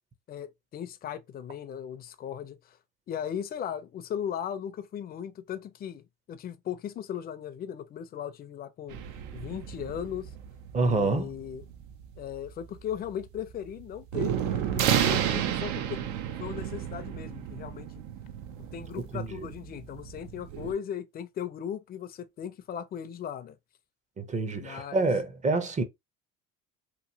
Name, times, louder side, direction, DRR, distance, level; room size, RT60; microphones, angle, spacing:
voice 1, 0.3-2.8 3.1-9.0 9.3-10.3 10.8-11.6 12.2-16.0 16.4-18.0 18.6-23.6 24.6-25.1, left 9 dB, 30° left, 0.4 m, -37 dB
sound 1, 8.9-20.7, right 9 dB, 75° right, 0.6 m, -32 dB
voice 2, 10.7-11.3 19.1-19.5 24.2-25.8, right 3 dB, 25° right, 0.6 m, -27 dB
3.0 x 2.6 x 2.6 m
cardioid pair, 120°, 30 cm